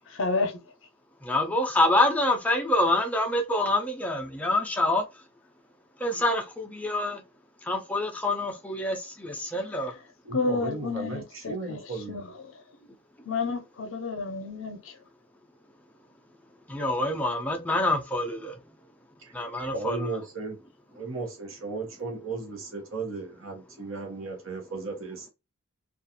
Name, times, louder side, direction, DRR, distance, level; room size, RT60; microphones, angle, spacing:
voice 1, 0.1-0.6 10.3-11.8 12.1-12.5 13.2-14.9, left 4 dB, 65° left, 0.6 m, -30 dB
voice 2, 1.2-5.0 6.0-7.2 7.7-9.9 16.7-18.5 19.3-20.0, left 1 dB, 5° left, 0.4 m, -26 dB
voice 3, 10.2-12.3 19.7-20.6 20.9-25.3, right 3 dB, 70° right, 0.9 m, -35 dB
2.4 x 2.3 x 2.7 m
head